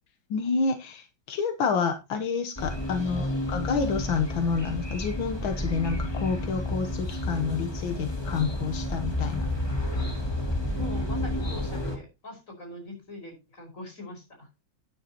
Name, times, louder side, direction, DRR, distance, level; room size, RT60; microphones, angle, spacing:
voice 1, 0.3-9.5, left 5 dB, 85° left, 6 dB, 1.9 m, -29 dB
sound 1, 2.6-12.0, left 1 dB, 15° left, 2.5 m, -31 dB
voice 2, 10.7-14.5, left 2 dB, 40° left, 2 dB, 5.6 m, -43 dB
13.5 x 9.6 x 2.9 m, 0.25 s
omnidirectional pair, 2.1 m